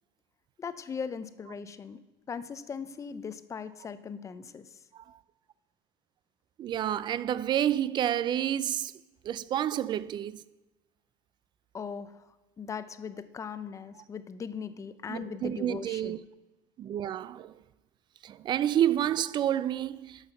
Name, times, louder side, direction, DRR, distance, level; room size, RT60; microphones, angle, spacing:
voice 1, 0.6-2.0 2.3-4.7 11.7-12.2 12.6-16.2, left 6 dB, 25° left, 0.6 m, -39 dB
voice 2, 6.6-8.9 9.2-10.4 15.1-16.2 16.8-17.5 18.2-20.3, right 11 dB, 35° right, 0.4 m, -29 dB
11.5 x 5.7 x 6.8 m
cardioid pair, 135°, 13 cm